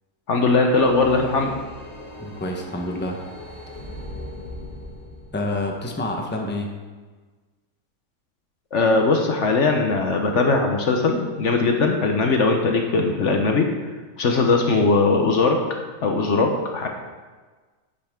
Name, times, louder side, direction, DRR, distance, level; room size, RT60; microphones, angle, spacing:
voice 1, 0.3-1.5 8.7-13.7 14.2-15.6 16.0-16.9, left 3 dB, 55° left, 3 dB, 1.1 m, -20 dB
sound 1, 0.7-6.4, left 1 dB, 25° left, 1.9 m, -39 dB
voice 2, 2.2-3.2 5.3-6.7, left 1 dB, 10° left, 1 dB, 0.9 m, -28 dB
10.0 x 9.0 x 3.6 m, 1.4 s
omnidirectional pair, 1.5 m